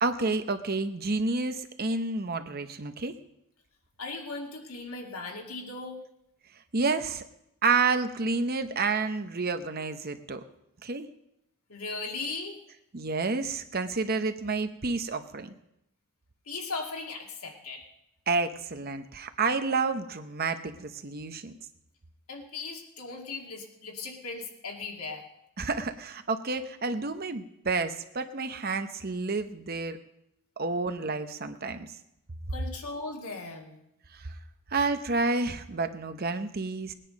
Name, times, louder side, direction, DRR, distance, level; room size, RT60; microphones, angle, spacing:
voice 1, 0.0-3.1 6.7-7.2 7.6-10.4 10.8-11.1 12.9-15.5 18.3-21.5 25.6-30.0 30.6-31.9 34.7-36.9, right 4 dB, 45° right, 9 dB, 0.9 m, -29 dB
voice 2, 4.0-6.0 11.7-12.6 16.5-17.8 22.3-25.3 32.5-33.8, left 3 dB, 90° left, 1 dB, 2.4 m, -38 dB
19.0 x 10.0 x 5.2 m, 0.83 s
head